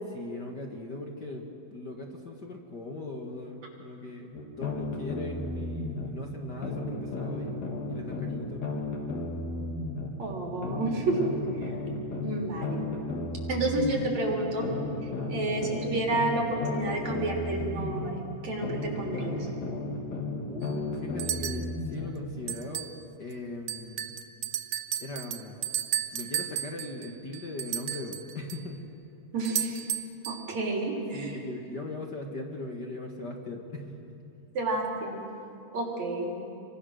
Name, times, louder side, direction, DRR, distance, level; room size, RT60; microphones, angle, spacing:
voice 1, 0.1-1.4 1.7-8.7 20.5-22.9 23.2-24.1 25.0-25.6 26.1-28.9 31.1-34.1, left 2 dB, 40° left, 1 dB, 2.0 m, -39 dB
sound 1, 4.3-6.1 6.6-10.1 10.6-14.1 14.6-18.1 18.6-22.1, left 2 dB, 75° left, 4.3 m, -34 dB
voice 2, 10.2-11.3 11.6-11.7 12.2-12.8 13.5-14.7 15.0-19.5 29.3-29.8 30.3-31.4 34.5-35.2 35.7-36.3, right 2 dB, 70° right, 0 dB, 4.7 m, -30 dB
sound 2, 20.6-20.7 21.2-21.7 22.5-23.0 23.3-23.4 23.7-28.6 29.4-30.5, right 11 dB, 90° right, 2.4 m, -34 dB
28.5 x 23.5 x 6.5 m, 2.8 s
omnidirectional pair, 3.3 m